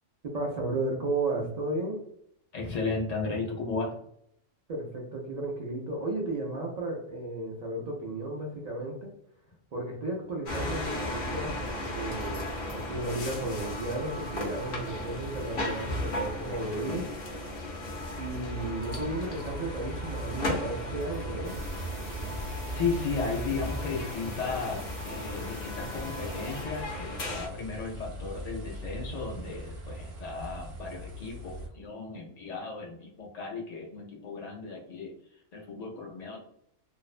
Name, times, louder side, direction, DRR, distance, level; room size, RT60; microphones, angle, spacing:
voice 1, 0.2-2.0 4.7-9.1 9.7-11.6 11.9-17.1 18.2-21.6, right 2 dB, 75° right, -2 dB, 0.3 m, -34 dB
voice 2, 2.5-3.9 22.8-35.1 35.5-36.4, left 4 dB, 80° left, -1 dB, 0.3 m, -35 dB
sound 1, 10.5-27.5, left 1 dB, 55° left, 0.7 m, -35 dB
sound 2, 19.3-31.7, equal, 55° right, 0.8 m, -42 dB
sound 3, 21.4-26.7, right 1 dB, 20° right, 0.6 m, -49 dB
2.5 x 2.0 x 2.4 m, 0.72 s
omnidirectional pair, 1.3 m